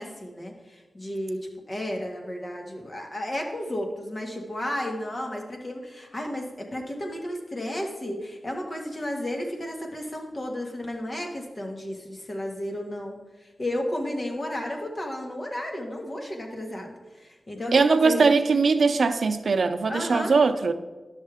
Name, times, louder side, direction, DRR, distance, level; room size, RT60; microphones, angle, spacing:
voice 1, 0.0-18.4 19.9-20.3, left 1 dB, 40° left, 1.6 m, -33 dB
voice 2, 17.7-20.7, right 4 dB, 75° right, 0.5 m, -21 dB
11.5 x 6.5 x 3.5 m
wide cardioid pair, 80°, 0 cm